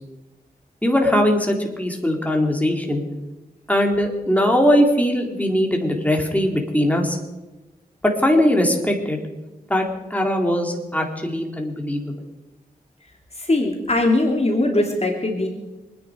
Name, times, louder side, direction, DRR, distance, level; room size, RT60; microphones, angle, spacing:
voice 1, 0.8-3.0 3.7-7.2 8.2-9.2 9.7-9.9 10.1-12.1, equal, 10° left, 1 dB, 3.9 m, -20 dB
voice 2, 13.4-15.5, left 2 dB, 40° left, 1 dB, 3.0 m, -20 dB
26.0 x 10.5 x 5.2 m, 1.1 s
cardioid pair, 40°, 16 cm